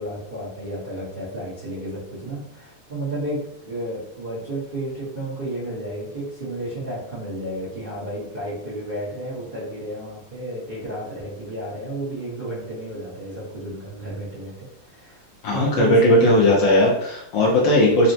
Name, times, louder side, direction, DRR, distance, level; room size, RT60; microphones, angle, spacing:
voice 1, 0.0-15.2 15.5-16.6, right 1 dB, 45° right, -11 dB, 0.7 m, -32 dB
voice 2, 15.4-18.1, left 1 dB, 70° left, -3 dB, 1.2 m, -17 dB
4.1 x 2.0 x 2.6 m, 0.79 s
omnidirectional pair, 2.4 m